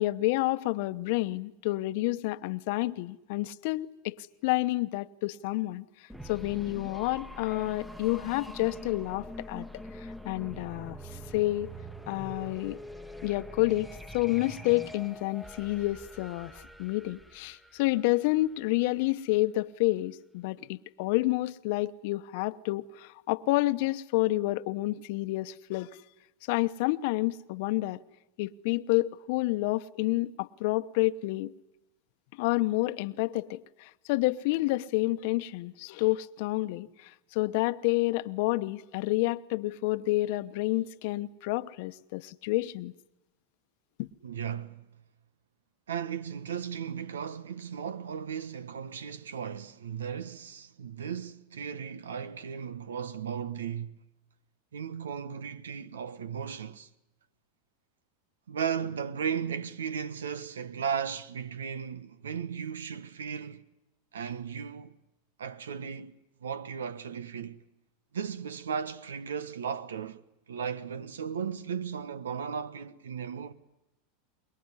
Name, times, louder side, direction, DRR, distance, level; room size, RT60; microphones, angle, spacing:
voice 1, 0.0-5.8 6.2-9.7 9.9-11.7 12.1-12.8 13.2-13.9 14.1-25.9 26.5-28.0 28.4-31.5 32.4-42.9 44.0-44.1, left 19 dB, 65° left, 0.9 m, -29 dB
sound 1, 6.1-18.8, equal, 5° right, 1.3 m, -44 dB
voice 2, 44.2-44.8 45.9-53.9 54.7-56.9 58.5-63.6 64.1-64.9 65.4-66.2 66.4-67.6 68.1-70.2 70.5-73.5, right 7 dB, 90° right, 1.2 m, -36 dB
24.0 x 22.0 x 9.8 m
hypercardioid pair, 100°, 0 cm